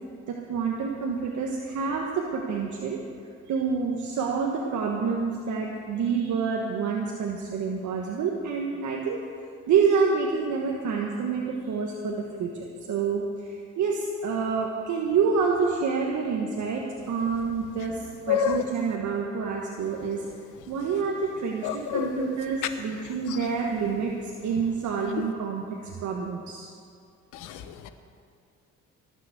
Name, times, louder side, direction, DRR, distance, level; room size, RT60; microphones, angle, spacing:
voice 1, 0.3-3.0 3.5-9.2 9.7-12.5 12.9-20.2 20.7-26.7, right 5 dB, 70° right, -1 dB, 1.4 m, -28 dB
voice 2, 18.3-18.6 21.6-22.3 27.4-27.9, left 8 dB, 90° left, 9 dB, 1.0 m, -27 dB
18.0 x 7.0 x 7.9 m, 2.3 s
cardioid pair, 90°, 30 cm